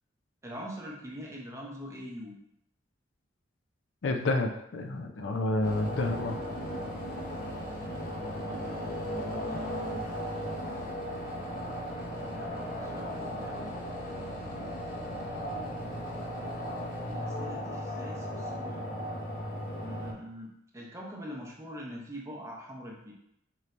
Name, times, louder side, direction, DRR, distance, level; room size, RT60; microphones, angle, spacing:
voice 1, 0.4-2.4 6.8-7.0 8.4-10.1 12.3-13.8 17.0-19.0 19.8-23.1, equal, 15° right, -2 dB, 0.7 m, -43 dB
voice 2, 4.0-6.4, left 2 dB, 75° left, 5 dB, 0.4 m, -29 dB
sound 1, 5.6-20.1, equal, 50° left, 0.8 m, -36 dB
4.6 x 2.7 x 3.2 m, 0.79 s
head